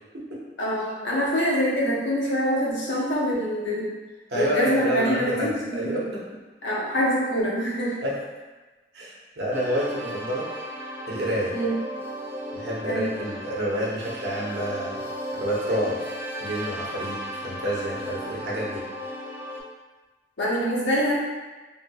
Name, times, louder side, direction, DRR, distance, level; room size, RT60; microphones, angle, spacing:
voice 1, 0.6-3.9 4.3-6.0 6.6-8.0 11.5-11.8 12.8-13.1 20.4-21.2, equal, 80° left, -5 dB, 0.8 m, -25 dB
voice 2, 4.3-6.2 8.0-8.2 8.9-10.5 11.1-11.5 12.5-16.0 16.4-18.8, right 1 dB, 65° right, -5 dB, 0.8 m, -29 dB
sound 1, 9.5-19.6, equal, 10° right, 0.4 m, -35 dB
3.6 x 2.7 x 2.2 m, 1.2 s
head